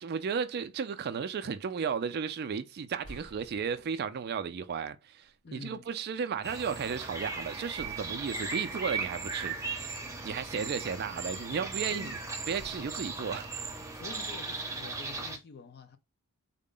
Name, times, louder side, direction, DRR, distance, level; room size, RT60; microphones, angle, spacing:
voice 1, 0.0-9.6 9.9-10.0 10.2-12.2 12.5-13.5, right 6 dB, 45° right, 0.4 m, -34 dB
sound 1, 3.0-4.3 5.2-5.4 7.8-9.9 10.5-11.4 12.6-14.6, equal, 90° left, 1.7 m, -54 dB
voice 2, 5.4-5.9 11.9-12.1 13.9-16.0, left 4 dB, 45° left, 0.5 m, -47 dB
sound 2, 6.4-15.4, right 4 dB, 15° right, 0.7 m, -37 dB
3.7 x 2.1 x 3.8 m
head